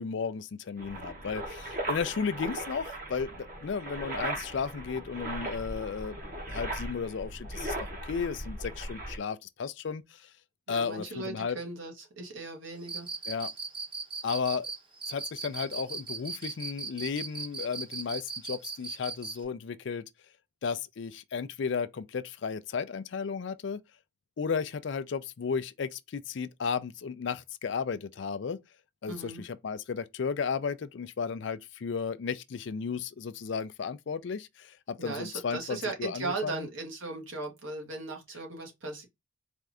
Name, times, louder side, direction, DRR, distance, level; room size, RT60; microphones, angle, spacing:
voice 1, 0.0-10.3 10.7-11.6 13.3-13.5 14.2-14.7 15.1-20.0 20.6-23.8 24.4-28.6 29.0-36.7, left 6 dB, 60° left, 0.4 m, -34 dB
sound 1, 0.8-9.2, right 1 dB, 45° right, 1.1 m, -38 dB
voice 2, 10.7-13.1 29.1-29.4 35.0-39.1, right 3 dB, 70° right, 1.5 m, -37 dB
Cricket, 12.8-19.4, right 4 dB, 25° right, 0.9 m, -37 dB
4.3 x 2.5 x 3.5 m
head